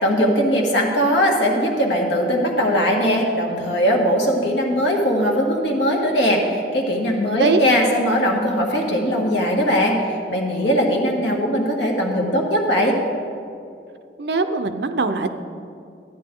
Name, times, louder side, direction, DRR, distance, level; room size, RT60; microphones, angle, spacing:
voice 1, 0.0-13.0, equal, 75° left, 0 dB, 1.7 m, -20 dB
voice 2, 14.2-15.3, right 3 dB, 65° right, 9 dB, 0.6 m, -21 dB
12.5 x 9.6 x 3.8 m, 2.4 s
head